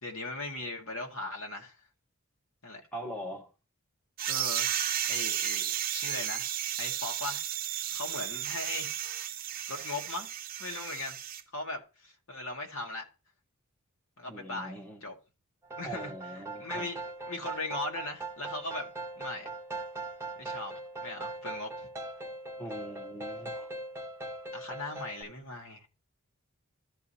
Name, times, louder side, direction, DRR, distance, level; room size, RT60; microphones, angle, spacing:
voice 1, 0.0-1.8 2.6-2.8 4.3-7.4 7.9-8.9 9.7-10.3 10.6-11.2 11.5-13.1 14.2-15.1 15.8-19.5 20.4-20.7 21.0-21.9 24.5-25.9, left 2 dB, 70° left, 1.9 m, -39 dB
voice 2, 2.9-3.5 9.8-9.9 14.3-15.0 15.8-16.9 22.6-23.7, right 1 dB, 5° left, 1.2 m, -42 dB
sound 1, 4.2-11.4, right 11 dB, 40° right, 0.6 m, -33 dB
sound 2, 15.7-25.2, right 2 dB, 10° right, 0.9 m, -40 dB
13.5 x 4.8 x 2.9 m
head